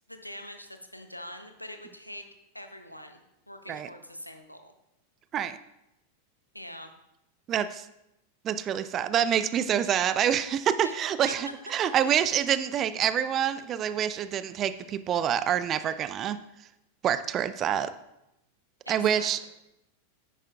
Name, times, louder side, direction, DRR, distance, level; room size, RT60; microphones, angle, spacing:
voice 1, 0.1-2.2 2.5-3.2 3.5-4.7 6.5-6.9 10.8-10.9 11.3-11.4 18.8-19.5, equal, 90° left, 7 dB, 0.7 m, -43 dB
voice 2, 7.5-7.9 8.4-16.4 17.0-17.9 18.9-19.4, right 9 dB, 30° right, 13 dB, 0.4 m, -26 dB
9.9 x 9.1 x 2.4 m, 0.87 s
figure-of-eight pair, 90°, 0 cm